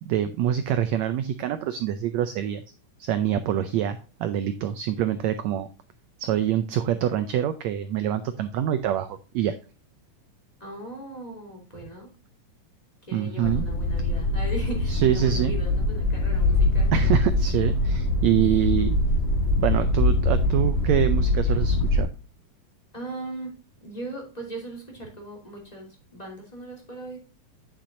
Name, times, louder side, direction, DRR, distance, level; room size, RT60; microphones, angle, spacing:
voice 1, 0.0-2.6 3.0-5.7 6.2-9.6 13.1-13.7 14.9-15.5 16.9-18.9 19.6-22.1, right 10 dB, 85° right, 10 dB, 1.5 m, -25 dB
voice 2, 10.6-12.1 13.0-16.9 22.9-27.2, right 2 dB, 15° left, -1 dB, 2.4 m, -38 dB
sound 1, 13.4-22.0, left 2 dB, 40° left, 2.5 m, -23 dB
8.9 x 7.3 x 2.6 m, 0.33 s
omnidirectional pair, 3.9 m